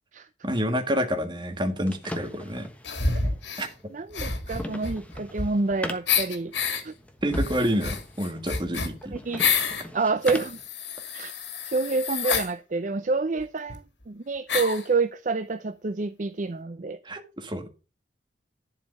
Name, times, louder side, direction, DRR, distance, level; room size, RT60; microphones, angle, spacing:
voice 1, 0.4-2.7 3.6-3.7 7.2-9.1 17.0-17.7, equal, 25° right, 1.6 m, -28 dB
sound 1, 1.4-10.7, left 1 dB, 10° left, 1.2 m, -41 dB
sound 2, 2.8-3.7 4.1-5.7 6.1-6.8 7.3-9.8 10.2-12.5 13.4-13.5 13.7-13.8 14.5-14.9, left 5 dB, 90° left, 2.1 m, -28 dB
voice 2, 3.9-6.5 6.8-6.9 9.1-9.5 9.9-10.6 11.1-11.3 11.6-17.0, right 3 dB, 45° right, 0.5 m, -28 dB
11.0 x 4.9 x 6.6 m
head